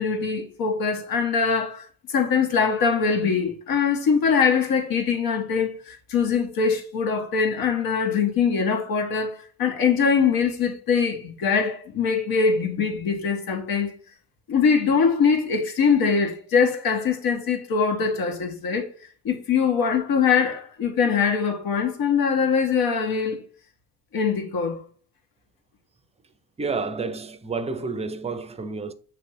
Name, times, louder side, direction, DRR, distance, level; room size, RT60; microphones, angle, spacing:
voice 1, 0.0-13.9 14.5-18.9 19.2-23.4 24.1-24.8, left 6 dB, 65° left, 1.6 m, -22 dB
voice 2, 26.6-28.9, right 4 dB, 15° right, 0.6 m, -30 dB
7.9 x 3.3 x 4.3 m
cardioid pair, 110°, 39 cm